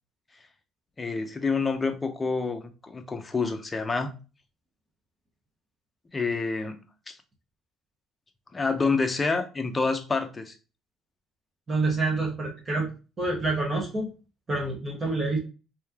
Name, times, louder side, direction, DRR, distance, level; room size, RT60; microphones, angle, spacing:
voice 1, 1.0-4.1 6.1-6.8 7.1-7.2 8.5-10.5, left 4 dB, 20° left, 0.6 m, -28 dB
voice 2, 11.7-12.9 13.2-14.1 14.5-15.4, right 3 dB, 30° right, 1.1 m, -27 dB
3.2 x 2.7 x 3.4 m
cardioid pair, 105°, 0 cm